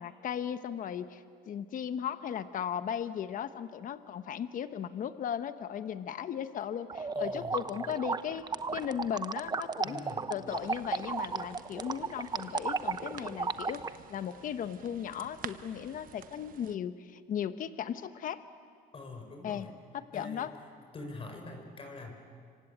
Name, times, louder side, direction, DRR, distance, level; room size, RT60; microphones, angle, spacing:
voice 1, 0.0-18.4 19.4-19.7 19.9-20.5, left 9 dB, 50° left, 11 dB, 1.1 m, -37 dB
sound 1, 6.9-13.9, right 4 dB, 25° right, 0.9 m, -34 dB
voice 2, 7.1-7.7 9.8-10.3 18.9-19.8 20.1-20.5 20.9-22.1, left 2 dB, 35° left, 4 dB, 4.9 m, -44 dB
sound 2, 10.5-16.8, right 10 dB, 55° right, 1.0 m, -50 dB
26.5 x 25.0 x 8.8 m, 2.2 s
cardioid pair, 110°, 17 cm